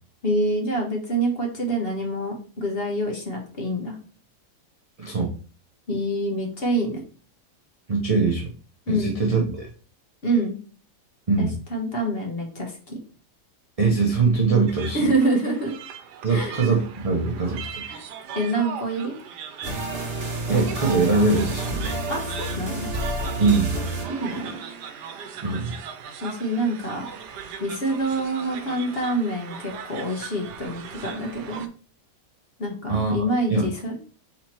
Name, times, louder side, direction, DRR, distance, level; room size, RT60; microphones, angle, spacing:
voice 1, 0.2-3.9 5.9-7.0 8.9-9.2 10.2-10.5 11.4-13.0 14.9-15.7 16.3-16.5 17.8-18.1 18.3-19.1 22.1-22.9 24.1-24.5 26.2-27.1 27.6-31.7 32.6-34.1, right 1 dB, 40° left, 1 dB, 1.1 m, -26 dB
voice 2, 5.0-5.3 7.9-8.5 8.9-9.7 11.3-11.5 13.8-15.1 16.2-17.8 20.5-21.8 23.4-23.8 25.4-25.7 32.9-33.2 33.5-33.7, right 4 dB, 50° right, -1 dB, 0.4 m, -22 dB
sound 1, 14.7-31.7, right 7 dB, 90° right, 1.2 m, -39 dB
sound 2, 19.6-24.9, right 2 dB, 35° right, 1.3 m, -30 dB
4.1 x 2.9 x 4.3 m, 0.39 s
omnidirectional pair, 1.7 m